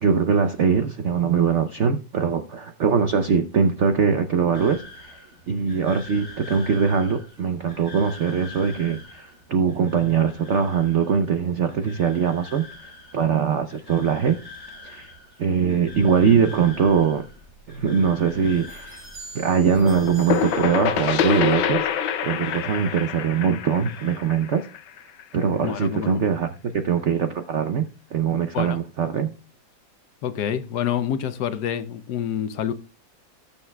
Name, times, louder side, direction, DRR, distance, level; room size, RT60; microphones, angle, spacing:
voice 1, 0.0-5.2 5.5-14.4 14.8-15.1 15.4-17.2 17.7-19.0 19.3-21.9 22.2-24.7 25.3-29.3, right 6 dB, 70° right, 0.7 m, -22 dB
sound 1, 4.5-23.4 23.7-24.2, left 3 dB, 15° left, 4.9 m, -45 dB
sound 2, 17.1-21.9, right 2 dB, 40° right, 2.8 m, -47 dB
sound 3, 19.9-25.4, left 8 dB, 85° left, 1.5 m, -26 dB
voice 2, 25.6-26.2 28.5-28.8 30.2-32.7, left 9 dB, 70° left, 1.1 m, -27 dB
19.0 x 7.2 x 2.3 m
omnidirectional pair, 2.0 m